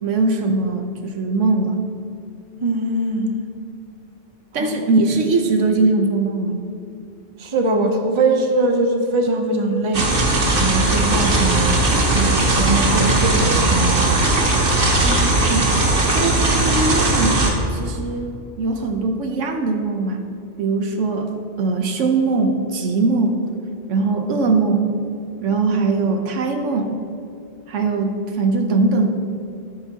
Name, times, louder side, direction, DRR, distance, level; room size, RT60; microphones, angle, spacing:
voice 1, 0.0-1.8 4.5-6.6 15.0-15.2 15.5-15.7 16.1-17.5 17.7-20.2 20.6-21.3 21.6-23.4 23.9-24.9 25.4-27.0 27.7-29.1, right 3 dB, 85° right, 5 dB, 1.3 m, -21 dB
voice 2, 2.6-3.4 4.6-4.7 7.4-10.1 10.5-11.8 12.1-14.1, right 2 dB, 30° right, 4 dB, 0.8 m, -21 dB
sound 1, 9.9-17.5, right 2 dB, 50° right, 1.5 m, -18 dB
13.5 x 9.1 x 2.9 m, 2.6 s
omnidirectional pair, 1.2 m